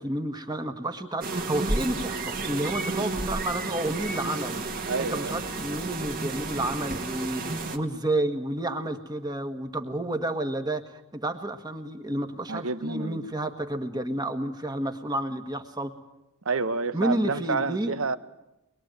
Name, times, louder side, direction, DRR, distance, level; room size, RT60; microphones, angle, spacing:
voice 1, 0.0-4.6 5.0-7.4 7.7-15.9 16.9-17.9, right 1 dB, 20° right, 7 dB, 1.7 m, -30 dB
sound 1, 1.2-7.8, right 2 dB, 40° right, 2.0 m, -32 dB
voice 2, 4.9-5.4 12.5-13.2 16.4-18.2, right 4 dB, 65° right, 14 dB, 1.0 m, -29 dB
23.5 x 22.0 x 9.2 m, 0.92 s
head